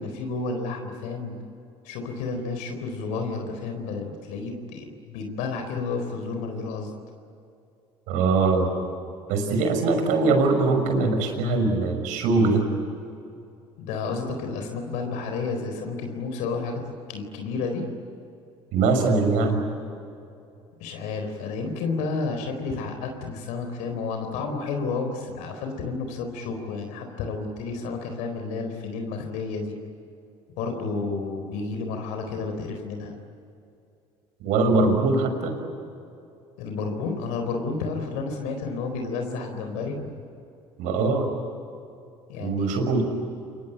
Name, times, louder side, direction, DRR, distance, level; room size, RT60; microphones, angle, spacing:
voice 1, 0.0-1.4 1.8-6.9 13.8-17.9 20.8-29.8 30.6-33.2 36.6-40.1 42.3-42.8, left 4 dB, 75° left, 5 dB, 4.2 m, -31 dB
voice 2, 8.1-8.7 9.3-12.6 18.7-19.6 34.4-35.6 40.8-41.3 42.4-43.0, right 3 dB, 75° right, 5 dB, 6.0 m, -22 dB
28.0 x 23.0 x 9.0 m, 2.6 s
hypercardioid pair, 70°, 13 cm